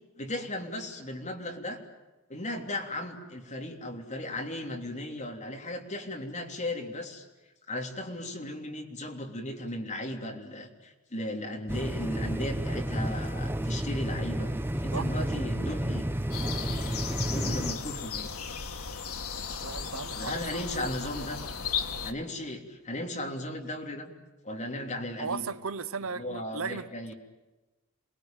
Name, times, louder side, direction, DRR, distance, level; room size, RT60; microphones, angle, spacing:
voice 1, 0.1-1.8 2.3-7.2 7.7-14.5 14.8-16.1 17.3-18.3 20.2-21.4 22.0-24.1 24.4-25.5 26.1-27.1, left 1 dB, 35° left, 2 dB, 3.3 m, -36 dB
sound 1, 11.7-17.7, right 1 dB, 10° right, 0.8 m, -31 dB
sound 2, 16.3-22.1, left 6 dB, 90° left, 2.1 m, -36 dB
voice 2, 19.6-20.4 21.1-21.3 25.2-27.1, right 5 dB, 70° right, 13 dB, 1.0 m, -36 dB
28.0 x 20.5 x 9.1 m, 1.1 s
head